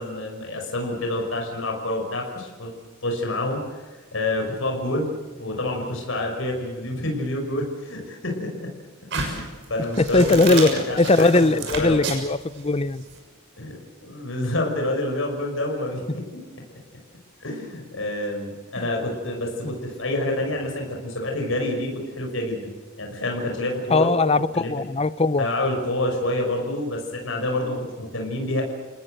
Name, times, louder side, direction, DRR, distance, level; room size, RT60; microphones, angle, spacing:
voice 1, 0.0-2.7 3.0-3.8 4.1-8.7 9.1-12.0 13.6-16.2 17.4-24.2 24.5-24.8 25.4-28.6, left 1 dB, 75° left, 2 dB, 5.9 m, -28 dB
sound 1, 9.1-13.2, right 4 dB, 65° right, 6.5 m, -31 dB
voice 2, 10.0-10.7 11.0-13.0 23.9-25.5, left 2 dB, 30° left, 15 dB, 0.8 m, -19 dB
30.0 x 19.0 x 7.9 m, 1.3 s
head